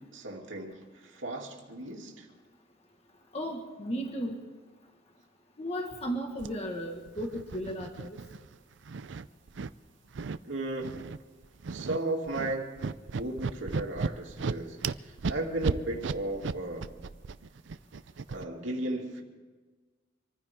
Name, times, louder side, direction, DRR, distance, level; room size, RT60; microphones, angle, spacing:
voice 1, 0.0-2.3 10.4-10.9 11.7-16.9 18.3-19.2, right 2 dB, 85° right, 0 dB, 2.7 m, -35 dB
voice 2, 3.3-4.4 5.6-8.2, equal, 35° left, 2 dB, 1.7 m, -35 dB
sound 1, 6.4-6.5 7.1-8.6 8.8-9.7 10.1-10.4 10.8-11.2 11.4-12.0 12.3-18.5, right 4 dB, 70° right, 0.5 m, -35 dB
26.0 x 15.0 x 3.7 m, 1.3 s
head